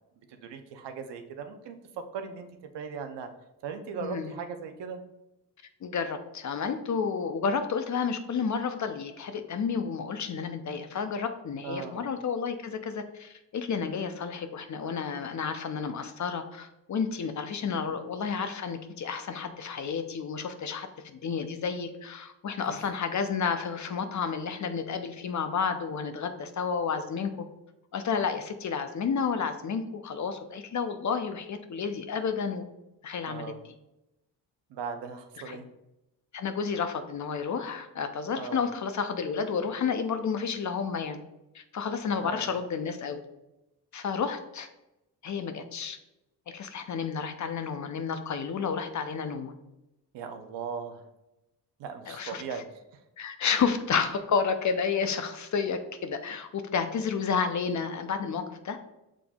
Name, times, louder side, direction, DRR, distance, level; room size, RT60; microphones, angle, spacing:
voice 1, 0.3-2.5 2.7-3.3 3.6-5.0 11.6-12.0 17.6-17.9 22.7-22.8 33.3-33.6 34.7-35.7 38.3-38.6 42.2-42.5 50.1-51.0 51.8-53.0, right 6 dB, 70° right, 7 dB, 0.7 m, -38 dB
voice 2, 4.0-4.3 5.8-27.5 27.9-32.6 33.0-33.5 35.5-35.6 36.3-41.2 41.5-43.2 43.9-44.7 45.2-46.0 46.5-49.5 52.1-52.6 53.2-58.8, left 6 dB, 40° left, 8 dB, 0.6 m, -31 dB
5.9 x 3.7 x 2.3 m, 0.93 s
supercardioid pair, 55°, 44 cm